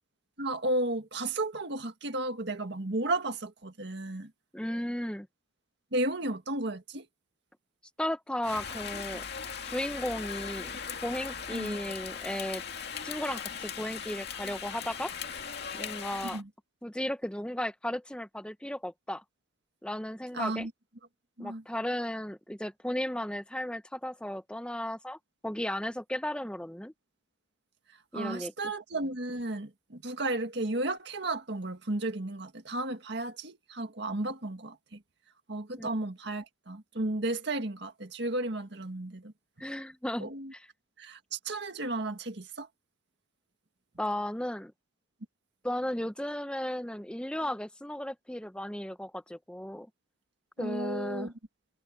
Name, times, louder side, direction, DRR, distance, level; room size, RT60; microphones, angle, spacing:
voice 1, 0.4-4.3 5.9-7.1 11.5-11.8 16.3-16.5 20.3-20.7 21.4-21.6 28.1-35.0 35.5-39.3 40.2-40.5 41.0-42.7 50.6-51.3, right 2 dB, 60° right, 1.9 m, -33 dB
voice 2, 4.5-5.3 8.0-9.2 9.6-12.6 13.0-15.1 15.7-16.4 16.8-19.2 19.8-20.7 21.4-26.9 28.1-28.5 35.8-35.9 39.6-40.6 44.0-44.7 45.6-49.9 50.6-51.3, left 1 dB, 5° left, 0.8 m, -35 dB
Rain, 8.4-16.4, left 7 dB, 55° left, 2.6 m, -39 dB
head